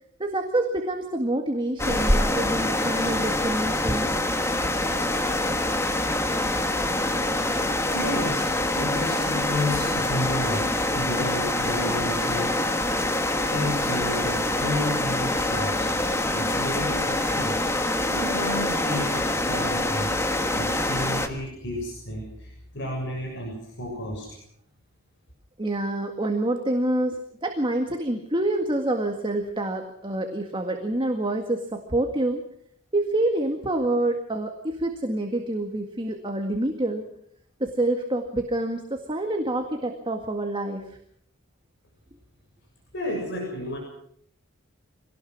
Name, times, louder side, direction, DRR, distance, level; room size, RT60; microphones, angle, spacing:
voice 1, 0.2-4.1 25.6-32.4 32.9-37.0 37.6-41.0, right 1 dB, 25° right, 4 dB, 1.9 m, -27 dB
sound 1, 1.8-21.3, left 1 dB, 15° left, 1.6 m, -25 dB
voice 2, 7.9-12.8 13.5-15.9 16.3-20.1 20.5-24.3 42.9-43.8, left 1 dB, 55° left, -1 dB, 6.8 m, -32 dB
26.0 x 18.5 x 6.2 m, 0.69 s
head